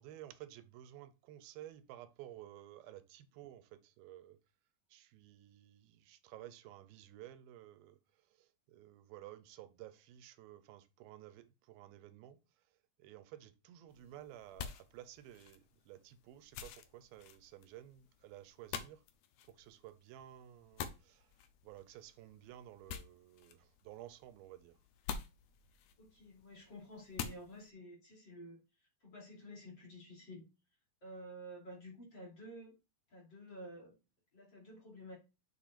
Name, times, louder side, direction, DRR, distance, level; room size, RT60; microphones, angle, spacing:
voice 1, 0.0-4.4 4.9-19.0 19.4-21.3 21.6-24.8, right 13 dB, 85° right, 2.6 m, -54 dB
sound 1, 13.9-27.7, left 7 dB, 75° left, 1.7 m, -49 dB
voice 2, 26.0-30.4 31.0-32.7 33.1-34.0 34.3-35.2, equal, 35° left, 3.2 m, -51 dB
7.3 x 7.0 x 2.5 m
omnidirectional pair, 4.2 m